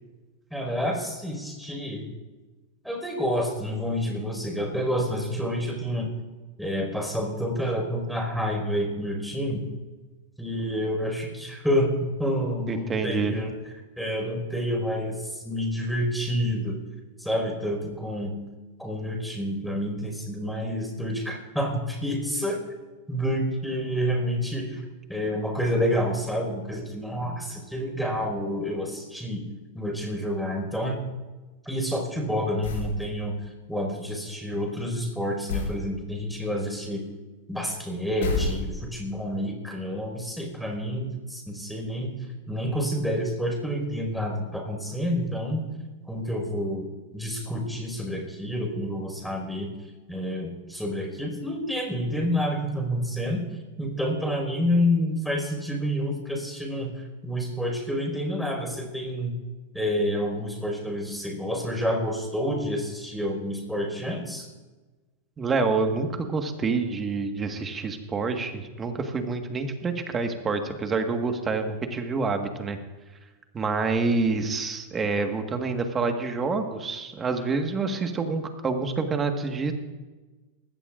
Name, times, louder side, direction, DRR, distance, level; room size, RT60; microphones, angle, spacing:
voice 1, 0.5-2.0 2.8-6.1 6.6-9.6 10.4-13.5 14.0-16.8 17.2-18.4 18.8-22.6 23.1-24.8 25.1-29.4 29.7-31.0 31.6-33.4 33.7-37.0 37.5-42.1 42.5-45.7 46.1-46.9 47.1-49.8 50.1-53.4 53.8-59.3 59.7-64.5, equal, ahead, 1 dB, 4.9 m, -28 dB
voice 2, 12.7-13.3 65.4-72.8 73.5-79.7, right 4 dB, 20° right, 5 dB, 1.5 m, -27 dB
sound 1, 32.6-33.0 35.5-35.8 38.2-39.0, left 3 dB, 75° left, 5.2 m, -28 dB
19.5 x 16.5 x 2.5 m, 1.2 s
hypercardioid pair, 110°, 0 cm